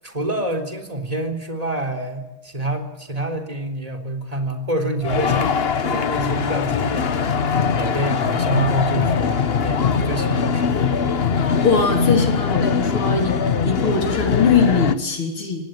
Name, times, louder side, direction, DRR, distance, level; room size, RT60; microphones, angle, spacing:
voice 1, 0.0-7.5 7.7-11.2, right 1 dB, 15° right, 3 dB, 3.6 m, -27 dB
sound 1, 5.0-14.9, left 6 dB, 45° left, 0.7 m, -21 dB
voice 2, 11.6-13.4 13.6-15.7, left 5 dB, 80° left, 3 dB, 4.4 m, -21 dB
26.5 x 18.5 x 9.3 m, 0.99 s
omnidirectional pair, 2.3 m